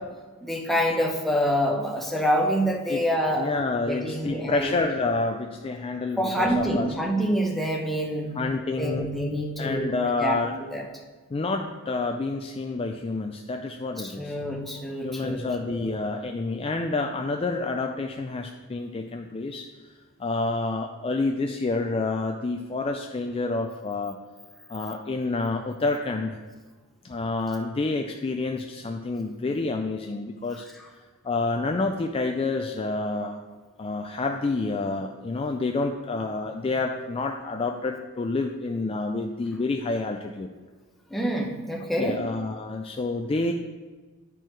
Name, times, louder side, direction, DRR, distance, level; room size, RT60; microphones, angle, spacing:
voice 1, 0.4-3.6 3.9-4.7 6.2-8.4 8.8-10.0 10.2-10.4 10.7-10.8 14.0-15.4 15.7-16.0 41.1-42.2, equal, ahead, 0 dB, 0.9 m, -26 dB
voice 2, 3.4-6.9 8.4-9.1 9.6-10.6 11.3-14.3 15.0-19.7 20.2-24.2 24.7-26.4 27.0-30.6 31.2-33.4 33.8-40.5 42.0-43.5, left 3 dB, 25° left, 3 dB, 0.3 m, -28 dB
10.5 x 4.6 x 4.5 m, 1.3 s
head